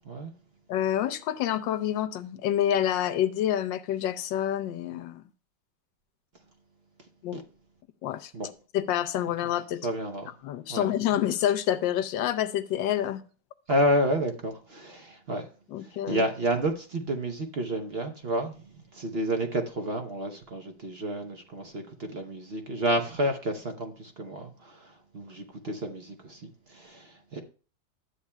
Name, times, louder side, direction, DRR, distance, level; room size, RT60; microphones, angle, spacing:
voice 1, 0.7-5.2 7.2-7.4 8.0-8.3 8.7-9.8 10.4-13.2 15.7-16.2, left 11 dB, 90° left, 1.3 m, -27 dB
voice 2, 9.8-10.3 10.7-10.9 13.7-15.5 15.8-18.5 18.9-27.4, right 1 dB, 50° right, 0.7 m, -30 dB
12.5 x 8.4 x 2.2 m
omnidirectional pair, 2.0 m